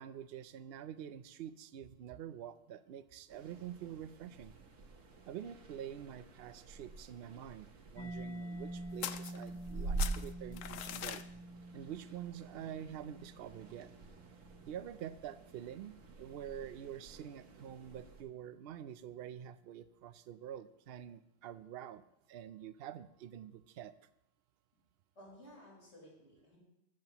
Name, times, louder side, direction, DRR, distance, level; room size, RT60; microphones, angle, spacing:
voice 1, 0.0-4.5 5.3-11.3 11.7-13.9 14.7-22.0 22.3-23.9, right 10 dB, 60° right, 13 dB, 0.7 m, -47 dB
sound 1, 3.3-18.2, right 3 dB, 80° right, 1.5 m, -47 dB
Mallet percussion, 8.0-15.5, right 1 dB, 10° left, 0.9 m, -48 dB
sound 2, 9.0-9.7 10.0-11.3, left 11 dB, 80° left, 1.0 m, -41 dB
voice 2, 25.1-26.6, equal, 65° left, -5 dB, 4.8 m, -56 dB
22.0 x 7.5 x 3.0 m, 0.86 s
omnidirectional pair, 1.3 m